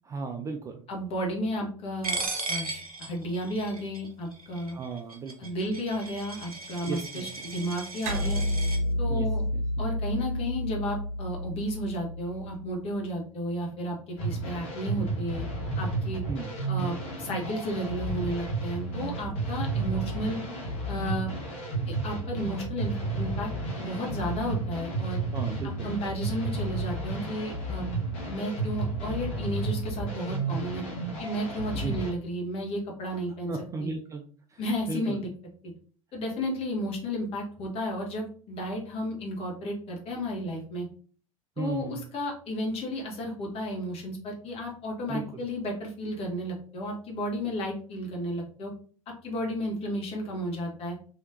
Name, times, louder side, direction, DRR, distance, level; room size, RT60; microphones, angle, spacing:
voice 1, 0.0-0.8 4.7-5.5 6.8-7.5 9.1-9.3 9.5-9.9 16.3-16.5 25.3-25.9 31.7-32.0 33.5-34.2 34.5-34.6 34.9-35.2 41.6-42.0 45.1-45.2, right 4 dB, 20° right, 4 dB, 0.3 m, -35 dB
voice 2, 0.9-4.8 5.4-8.4 9.0-9.4 9.8-15.4 15.8-16.2 16.7-20.4 20.9-21.3 21.9-23.5 23.8-25.2 25.8-27.9 28.3-30.8 31.2-33.5 33.8-33.9 34.6-35.3 36.1-40.9 41.6-48.7 49.2-50.9, equal, 35° left, 0 dB, 1.2 m, -33 dB
Coin (dropping), 2.0-8.8, right 3 dB, 90° right, 0.5 m, -37 dB
sound 1, 8.1-12.8, left 1 dB, 50° right, 1.4 m, -30 dB
sound 2, 14.2-32.1, right 3 dB, 50° left, 1.1 m, -32 dB
3.1 x 2.8 x 2.8 m, 0.44 s
figure-of-eight pair, 80°, 18 cm